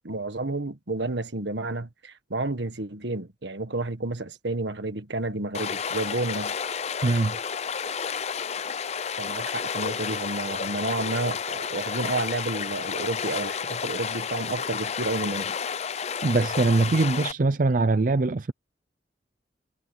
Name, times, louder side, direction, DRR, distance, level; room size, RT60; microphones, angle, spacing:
voice 1, 0.0-6.5 9.2-15.6, right 2 dB, 75° right, 1.6 m, -31 dB
Stream, 5.5-17.3, left 6 dB, 35° left, 0.5 m, -31 dB
voice 2, 7.0-7.4 16.2-18.5, right 3 dB, 45° right, 0.5 m, -22 dB
head